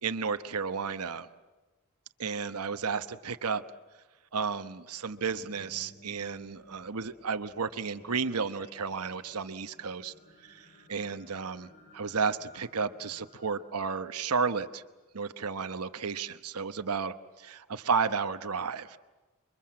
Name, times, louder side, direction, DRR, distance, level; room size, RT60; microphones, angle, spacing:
voice 1, 0.0-1.3 2.2-3.6 4.3-10.1 10.4-11.7 11.9-14.8 15.1-19.0, right 5 dB, 90° right, 10 dB, 1.0 m, -32 dB
sound 1, 4.9-15.3 15.9-16.0, left 1 dB, 45° left, 7.8 m, -57 dB
29.0 x 23.5 x 7.6 m, 1.2 s
head